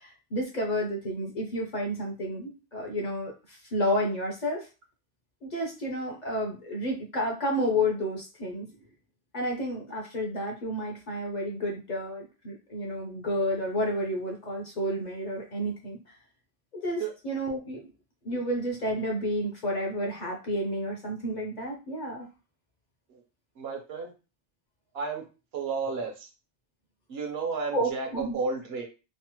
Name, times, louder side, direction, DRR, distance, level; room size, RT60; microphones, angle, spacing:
voice 1, 0.0-4.7 5.4-8.7 9.3-16.0 16.7-17.9 18.2-22.3 27.7-28.4, equal, 50° left, 0 dB, 0.7 m, -31 dB
voice 2, 23.6-24.1 24.9-25.2 25.5-26.3 27.1-28.8, right 4 dB, 70° right, 3 dB, 1.0 m, -32 dB
3.1 x 2.0 x 2.9 m, 0.31 s
omnidirectional pair, 1.1 m